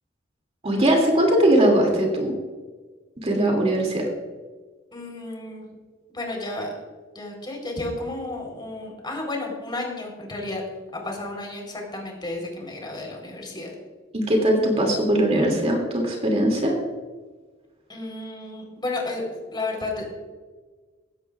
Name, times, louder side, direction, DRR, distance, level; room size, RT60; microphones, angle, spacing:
voice 1, 0.6-2.3 3.2-4.0 14.1-16.7, right 1 dB, 35° right, 1 dB, 2.6 m, -20 dB
voice 2, 4.9-5.7 6.1-6.7 7.1-10.6 10.9-13.7 17.9-20.2, left 2 dB, 25° left, 1 dB, 3.9 m, -32 dB
17.0 x 15.5 x 2.4 m, 1.4 s
head